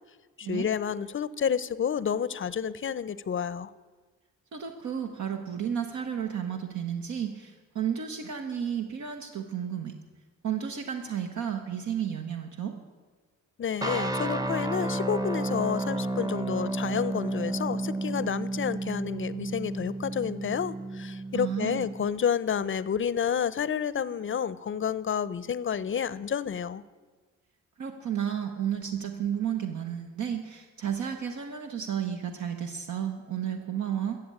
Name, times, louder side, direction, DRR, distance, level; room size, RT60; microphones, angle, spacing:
voice 1, 0.4-3.7 13.6-26.8, left 7 dB, 40° left, 17 dB, 0.6 m, -30 dB
voice 2, 4.5-9.9 10.4-12.8 21.3-21.9 27.8-34.2, right 8 dB, 75° right, 4 dB, 1.1 m, -32 dB
sound 1, 13.8-22.1, right 2 dB, 10° right, 0.8 m, -32 dB
14.0 x 7.8 x 8.4 m, 1.4 s
cardioid pair, 100°, 30 cm